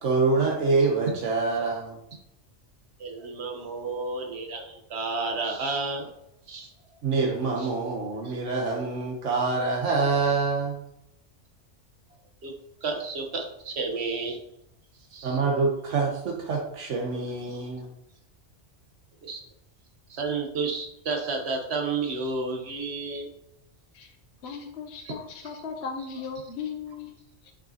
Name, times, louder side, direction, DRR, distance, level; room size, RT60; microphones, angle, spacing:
voice 1, 0.0-2.0 7.0-10.8 15.2-17.9, right 4 dB, 85° right, 0 dB, 1.3 m, -26 dB
voice 2, 3.0-6.1 6.5-6.7 7.6-7.7 8.2-8.4 12.4-12.5 12.8-14.4 15.1-15.4 19.2-19.4 20.1-23.3, right 3 dB, 65° right, 4 dB, 1.3 m, -31 dB
voice 3, 24.4-27.5, left 5 dB, 65° left, 3 dB, 0.9 m, -37 dB
6.5 x 5.3 x 2.8 m, 0.79 s
omnidirectional pair, 1.2 m